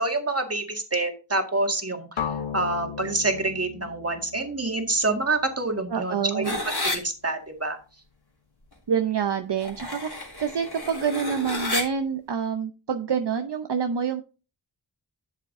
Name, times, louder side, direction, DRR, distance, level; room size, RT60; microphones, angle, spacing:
voice 1, 0.0-2.1 2.5-7.8, right 2 dB, 30° right, 4 dB, 1.9 m, -27 dB
sound 1, 2.2-6.1, left 7 dB, 85° left, 0.9 m, -36 dB
voice 2, 5.9-6.6 8.9-10.1 10.4-14.2, right 7 dB, 60° right, 7 dB, 0.7 m, -27 dB
sound 2, 6.4-7.0 9.6-11.8, left 2 dB, 55° left, 3.2 m, -30 dB
11.5 x 7.3 x 2.6 m, 0.32 s
wide cardioid pair, 45°, 47 cm